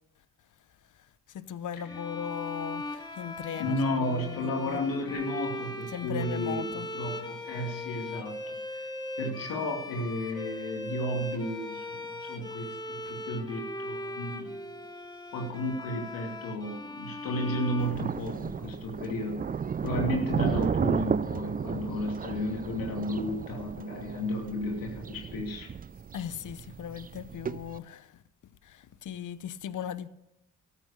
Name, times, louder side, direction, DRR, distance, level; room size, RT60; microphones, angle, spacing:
voice 1, 1.3-3.8 4.1-4.8 5.9-6.9 26.1-28.2 28.6-30.1, left 9 dB, 65° left, 0.9 m, -38 dB
sound 1, 1.9-18.7, left 1 dB, 10° left, 1.9 m, -39 dB
voice 2, 3.5-8.8 9.2-14.5 15.3-19.5 19.8-25.7, left 1 dB, 85° left, 2.7 m, -33 dB
Thunder, 17.8-27.8, right 6 dB, 25° right, 0.4 m, -33 dB
14.0 x 8.4 x 6.7 m
supercardioid pair, 60°, 34 cm